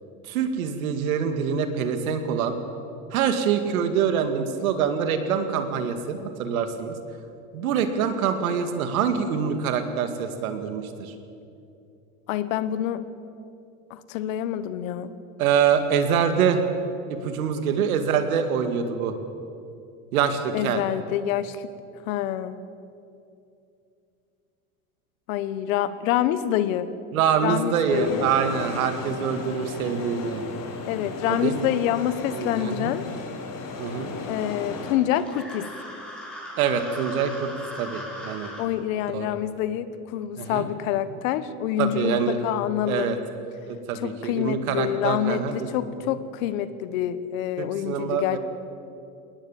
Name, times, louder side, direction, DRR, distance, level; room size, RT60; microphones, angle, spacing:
voice 1, 0.2-2.6 3.1-7.0 7.5-11.1 15.4-16.6 17.1-19.1 20.1-20.8 27.1-30.4 31.3-31.7 32.3-32.9 33.8-34.1 36.6-37.5 37.8-38.5 39.1-39.3 40.4-40.7 41.8-42.4 42.9-43.2 43.7-45.7 47.6-48.4, right 7 dB, 80° right, 8 dB, 2.2 m, -25 dB
voice 2, 12.3-13.0 13.9-15.1 20.5-21.7 22.1-22.5 25.3-26.9 27.4-28.3 30.9-33.1 34.3-35.7 38.6-43.1 44.0-48.4, left 11 dB, 70° left, 14 dB, 1.3 m, -27 dB
sound 1, 27.9-34.9, left 3 dB, 50° left, 3.9 m, -35 dB
sound 2, 35.1-38.7, equal, ahead, 5.3 m, -38 dB
21.0 x 19.0 x 7.3 m, 2.6 s
hypercardioid pair, 95°, 42 cm